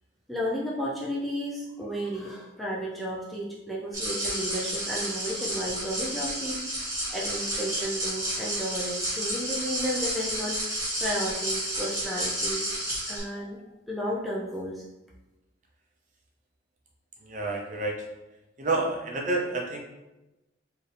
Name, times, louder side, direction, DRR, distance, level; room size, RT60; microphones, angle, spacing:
voice 1, 0.3-12.7 13.1-13.6 13.9-14.8, equal, ahead, -5 dB, 0.5 m, -33 dB
sound 1, 3.9-13.2, right 1 dB, 15° right, 1.3 m, -31 dB
voice 2, 17.3-17.9 18.6-19.8, right 3 dB, 40° right, 0 dB, 0.6 m, -29 dB
4.5 x 2.7 x 3.3 m, 1.0 s
head